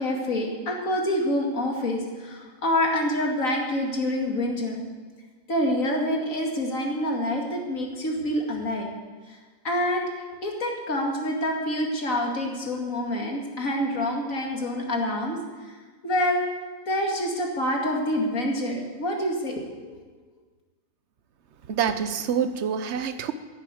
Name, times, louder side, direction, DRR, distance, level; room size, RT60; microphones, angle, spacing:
voice 1, 0.0-4.8 5.5-8.9 9.3-9.4 9.6-10.1 10.4-15.8 16.0-16.5 16.9-20.0, left 1 dB, 85° left, 1 dB, 2.7 m, -27 dB
voice 2, 21.7-23.3, right 7 dB, 60° right, 11 dB, 1.1 m, -26 dB
11.0 x 10.0 x 9.3 m, 1.4 s
omnidirectional pair, 1.4 m